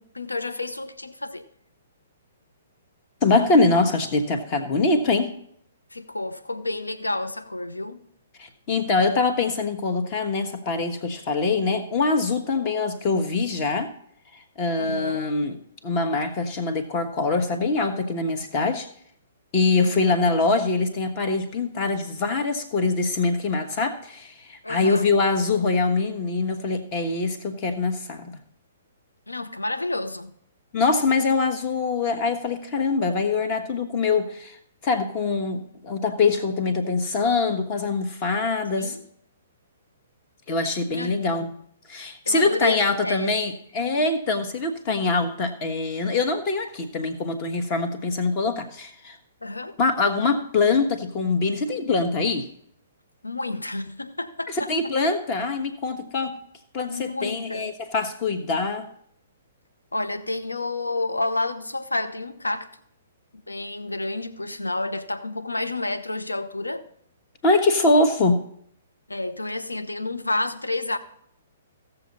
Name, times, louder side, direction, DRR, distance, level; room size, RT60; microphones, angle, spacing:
voice 1, 0.0-1.5 5.9-8.0 14.8-15.2 19.8-20.2 24.6-25.1 29.3-30.4 38.8-39.0 40.9-41.3 42.3-43.3 49.4-49.8 53.2-54.7 56.9-57.7 59.9-62.7 63.5-66.9 69.1-71.0, left 2 dB, 80° left, 0.8 m, -30 dB
voice 2, 3.2-5.3 8.4-13.9 14.3-15.6 15.8-18.9 19.5-28.4 30.7-38.9 40.5-41.5 41.9-49.2 49.8-52.5 54.5-56.4 56.7-58.9 67.4-68.4, left 3 dB, 30° left, 1.3 m, -24 dB
16.0 x 6.9 x 4.1 m
figure-of-eight pair, 120°, 0 cm